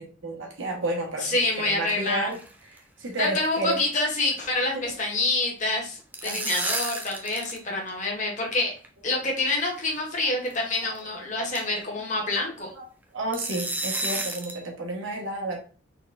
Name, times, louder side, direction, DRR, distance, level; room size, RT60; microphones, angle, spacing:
voice 1, 0.0-2.4 2.7-3.8 4.7-4.9 6.2-6.6 11.4-11.5 12.2-12.9 13.1-15.6, right 2 dB, 80° right, 1 dB, 1.4 m, -32 dB
voice 2, 1.2-2.3 3.2-8.7 9.0-12.7, left 2 dB, 40° left, 0 dB, 1.4 m, -27 dB
sound 1, 1.3-2.1 2.3-2.5 2.8-2.9 3.2-3.5 3.7-4.5 4.8-5.0 5.8-7.6 7.9-8.0 8.8-8.9 9.8-10.0 10.5-10.6 11.0-11.1 11.6-11.8 13.3-14.6, right 2 dB, 10° right, 0.5 m, -32 dB
4.1 x 4.0 x 2.5 m, 0.39 s
head